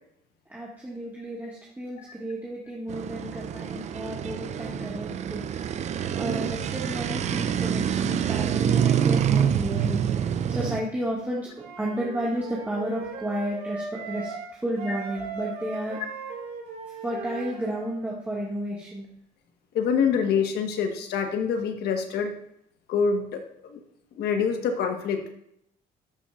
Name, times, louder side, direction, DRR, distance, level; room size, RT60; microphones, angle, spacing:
voice 1, 0.5-5.4 6.1-10.2 10.5-11.5 11.8-16.0 17.0-19.1, right 1 dB, 10° right, -6 dB, 1.8 m, -32 dB
sound 1, 2.9-10.8, right 8 dB, 40° right, 0.5 m, -26 dB
Wind instrument woodwind instrument, 11.5-14.5 14.8-17.9, right 5 dB, 65° right, 2.2 m, -38 dB
voice 2, 19.7-22.3 22.9-23.8 24.2-25.3, left 6 dB, 75° left, 5 dB, 1.3 m, -26 dB
12.5 x 5.6 x 2.4 m, 0.75 s
cardioid pair, 110°, 17 cm